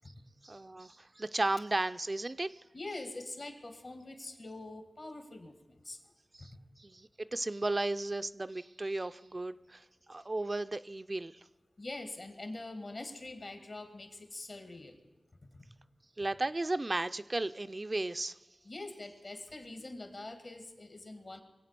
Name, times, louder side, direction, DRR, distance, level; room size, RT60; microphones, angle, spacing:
voice 1, 0.4-2.6 6.4-6.5 6.8-11.3 16.2-18.4, right 2 dB, 40° right, 11 dB, 0.4 m, -34 dB
voice 2, 2.7-6.0 6.4-6.5 11.8-15.0 15.5-15.7 18.6-21.4, left 2 dB, 60° left, 7 dB, 2.3 m, -44 dB
22.5 x 8.2 x 6.8 m, 1.1 s
cardioid pair, 45°, 0 cm